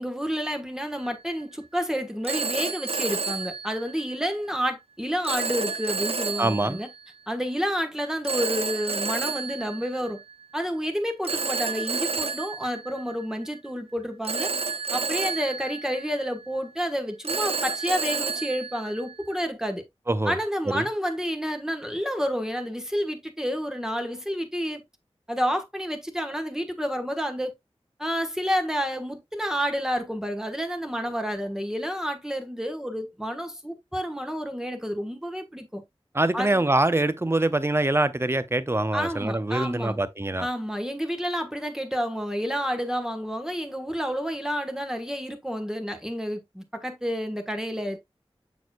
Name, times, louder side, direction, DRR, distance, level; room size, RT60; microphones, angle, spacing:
voice 1, 0.0-6.9 7.3-10.2 10.5-14.5 14.9-19.8 20.2-24.8 25.3-27.5 28.0-35.8 36.3-36.6 38.9-40.0 40.4-48.0, equal, 5° right, 1.3 m, -29 dB
Telephone, 1.0-1.3 2.2-4.3 5.2-7.0 8.2-10.4 11.2-13.6 14.2-16.6 17.2-19.5, right 5 dB, 70° right, 0.7 m, -31 dB
voice 2, 6.4-6.8 20.1-20.4 20.7-20.8 36.1-40.5, right 2 dB, 25° right, 0.7 m, -24 dB
7.0 x 6.2 x 2.3 m
wide cardioid pair, 55°, 10 cm